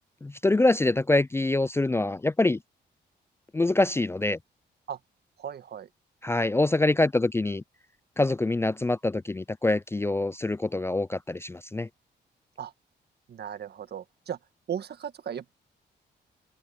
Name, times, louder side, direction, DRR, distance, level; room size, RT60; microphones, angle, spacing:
voice 1, 0.0-2.6 3.5-4.4 6.2-7.6 8.2-11.9, left 2 dB, 15° left, 0.4 m, -25 dB
voice 2, 5.4-5.9 12.6-12.7 13.3-14.4 14.7-15.6, right 9 dB, 60° right, 1.6 m, -36 dB
cardioid pair, 70°, 19 cm